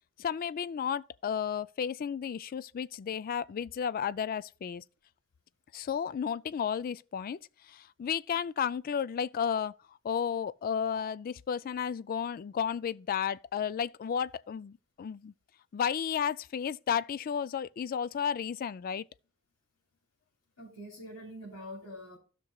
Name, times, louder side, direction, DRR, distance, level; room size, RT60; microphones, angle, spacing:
voice 1, 0.2-4.8 5.7-7.4 7.7-9.7 10.0-15.3 15.7-19.1, left 7 dB, 45° left, 0.3 m, -33 dB
voice 2, 20.6-22.2, equal, 80° left, 3.3 m, -45 dB
15.0 x 6.0 x 2.3 m
head